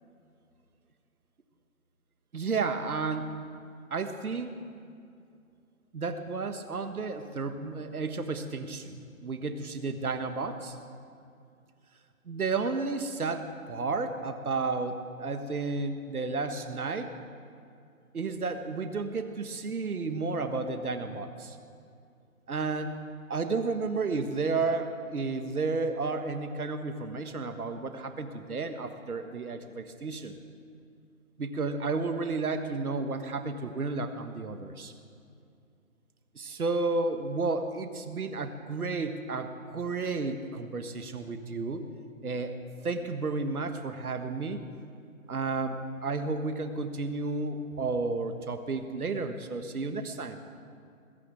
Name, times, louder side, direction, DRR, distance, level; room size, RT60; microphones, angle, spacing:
voice 1, 2.3-3.3 3.9-4.6 5.9-10.8 12.3-17.1 18.1-21.6 22.5-23.0 23.3-30.3 31.4-34.9 36.3-41.8 42.2-42.5 42.8-44.6 45.3-50.4, right 3 dB, 85° right, 7 dB, 1.5 m, -32 dB
20.5 x 7.1 x 9.1 m, 2.4 s
hypercardioid pair, 170°, 43 cm